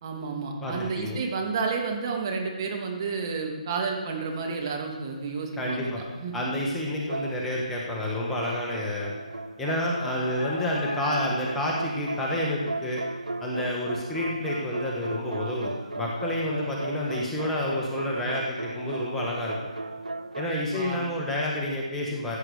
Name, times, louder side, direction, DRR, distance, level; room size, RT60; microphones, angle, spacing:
voice 1, 0.0-6.3 20.7-21.0, right 4 dB, 35° right, 1 dB, 2.4 m, -31 dB
voice 2, 0.6-1.2 5.6-6.0 6.3-9.1 9.6-13.0 13.4-19.6 20.3-22.4, left 1 dB, 5° left, -3 dB, 1.7 m, -29 dB
sound 1, 4.3-21.4, left 4 dB, 45° left, 2.5 m, -45 dB
sound 2, 7.1-7.9 8.4-20.6, right 2 dB, 85° right, 0.5 m, -36 dB
15.0 x 8.2 x 6.7 m, 1.4 s
figure-of-eight pair, 145°, 4 cm